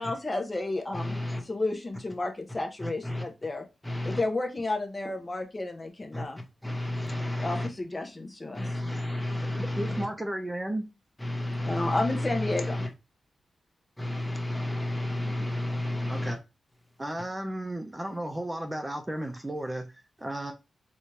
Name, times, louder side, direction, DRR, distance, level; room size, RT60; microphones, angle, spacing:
voice 1, 0.0-1.2 1.5-3.6 4.0-6.4 7.4-8.7 11.7-12.9, left 2 dB, 30° left, 0.7 m, -31 dB
voice 2, 0.9-1.4 2.8-3.3 3.8-4.2 6.1-7.7 8.5-10.1 11.2-12.9 14.0-16.4, left 1 dB, 5° left, 1.1 m, -32 dB
voice 3, 9.6-10.9 15.2-15.5 16.1-16.4 17.0-20.5, right 1 dB, 20° right, 0.6 m, -34 dB
4.1 x 2.3 x 3.2 m
cardioid pair, 60°, 0 cm